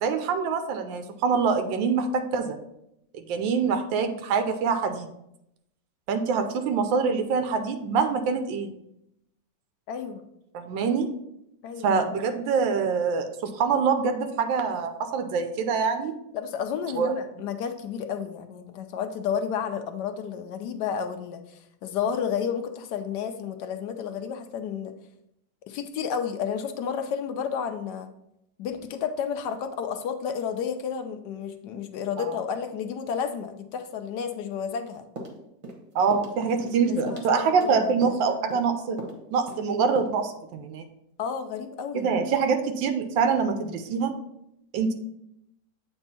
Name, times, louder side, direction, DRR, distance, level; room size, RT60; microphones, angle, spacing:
voice 1, 0.0-2.6 3.1-5.1 6.1-8.7 10.5-11.1 11.8-16.1 17.0-17.1 32.2-32.3 35.9-39.0 39.3-40.8 41.9-44.1 44.7-44.9, right 5 dB, 90° right, 7 dB, 1.3 m, -25 dB
voice 2, 9.9-10.2 11.6-12.0 16.3-24.9 25.7-28.1 28.6-35.0 36.9-38.0 38.2-38.4 41.2-42.1, left 7 dB, 70° left, 8 dB, 1.2 m, -31 dB
sound 1, 35.2-35.8 36.1-36.3 36.6-36.8 37.1-37.7 38.0-38.2 38.5-38.7 39.0-39.2 39.5-39.6 39.9-40.1, right 1 dB, 50° right, 1.3 m, -38 dB
7.8 x 3.6 x 4.1 m, 0.82 s
omnidirectional pair, 2.0 m